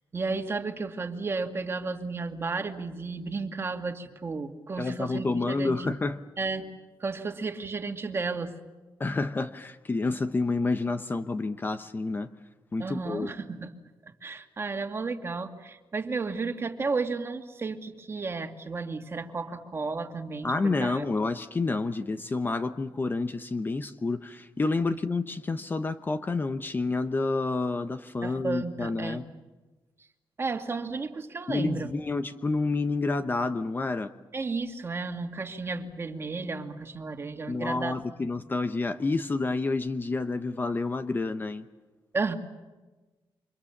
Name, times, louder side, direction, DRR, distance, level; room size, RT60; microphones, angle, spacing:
voice 1, 0.1-5.9 6.4-6.7 7.0-8.5 12.8-13.7 14.2-21.0 24.8-25.0 28.2-29.3 30.4-31.9 34.3-38.3 42.1-42.3, right 4 dB, 30° right, 5 dB, 2.3 m, -33 dB
voice 2, 4.8-6.2 9.0-12.3 12.7-13.3 20.4-29.2 31.5-34.1 37.5-41.6, left 3 dB, 25° left, 9 dB, 0.9 m, -29 dB
29.0 x 26.0 x 7.3 m, 1.2 s
cardioid pair, 135°, 8 cm